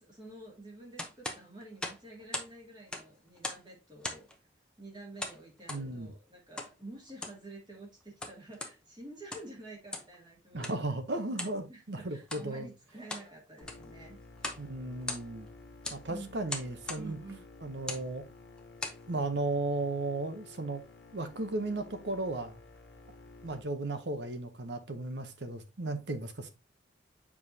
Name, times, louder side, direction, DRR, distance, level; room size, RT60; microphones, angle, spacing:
voice 1, 0.0-4.3 4.8-10.9 11.7-14.5 16.1-16.3 17.0-17.4, right 2 dB, 25° right, 2.3 m, -49 dB
sound 1, 1.0-2.5 2.8-3.7 4.0-4.4 5.2-5.9 6.6-6.7 7.1-7.4 8.0-8.8 9.2-9.6 9.9-10.2 10.6-10.8 11.4-11.6 12.2-12.5 12.9-13.3 13.6-13.9 14.4-14.7 14.9-15.5 15.8-16.0 16.5-17.1 17.8-18.1 18.6-19.0, left 2 dB, 5° left, 0.8 m, -39 dB
voice 2, 5.7-6.1 10.5-12.7 14.6-15.5 15.9-17.2 17.6-18.2 19.1-20.8 21.1-22.6 23.4-26.5, right 2 dB, 65° right, 0.9 m, -35 dB
sound 2, 13.6-23.6, left 3 dB, 60° left, 1.4 m, -53 dB
7.1 x 4.8 x 2.8 m
head